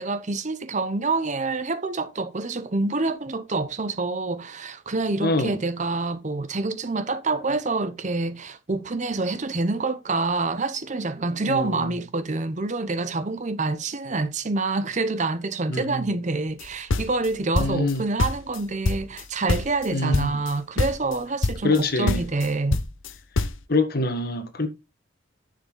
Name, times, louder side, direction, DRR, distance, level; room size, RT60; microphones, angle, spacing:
voice 1, 0.0-22.8, right 3 dB, 35° right, 0.8 m, -27 dB
voice 2, 5.2-5.6 11.5-11.9 15.7-16.1 17.6-18.0 19.9-20.4 21.6-22.2 23.7-24.7, left 2 dB, 45° left, 1.5 m, -25 dB
sound 1, 16.6-17.9 18.2-19.2 19.5-19.9 20.1-20.5 20.8-21.2 21.4-21.8 22.1-23.6, left 3 dB, 70° left, 0.8 m, -25 dB
10.0 x 6.6 x 3.8 m
head